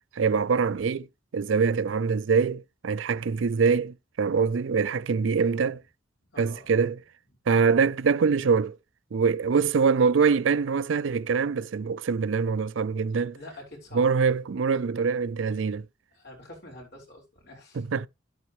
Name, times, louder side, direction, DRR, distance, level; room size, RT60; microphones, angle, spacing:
voice 1, 0.2-1.1 1.3-5.8 6.4-7.0 7.5-8.7 9.1-13.4 13.9-15.8 17.8-18.1, right 5 dB, 75° right, 0.4 m, -24 dB
voice 2, 6.3-6.7 13.3-14.4 16.1-17.8, left 1 dB, 60° left, 5.2 m, -46 dB
11.0 x 8.8 x 3.1 m
head